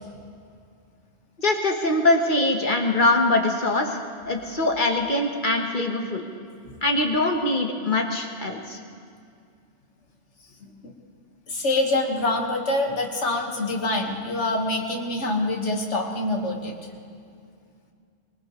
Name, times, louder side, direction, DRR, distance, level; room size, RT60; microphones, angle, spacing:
voice 1, 1.4-4.0 4.3-6.2 6.8-8.8, left 2 dB, 45° left, 2 dB, 1.4 m, -23 dB
voice 2, 11.5-16.7, left 2 dB, 75° left, 1 dB, 2.0 m, -25 dB
22.5 x 20.0 x 3.2 m, 2.3 s
omnidirectional pair, 1.2 m